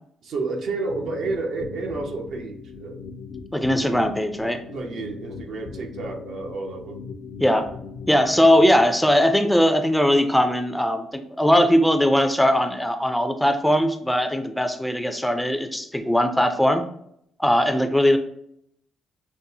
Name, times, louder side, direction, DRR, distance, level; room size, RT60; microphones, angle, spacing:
voice 1, 0.2-3.0 3.8-4.0 4.5-7.0, right 3 dB, 70° right, 3 dB, 0.7 m, -30 dB
sound 1, 0.9-8.8, left 5 dB, 75° left, 0.4 m, -40 dB
voice 2, 3.5-4.6 7.4-7.7 8.1-16.8 17.4-18.2, equal, 5° left, 7 dB, 0.4 m, -20 dB
5.2 x 2.1 x 2.7 m, 0.73 s
cardioid pair, 90°, 0 cm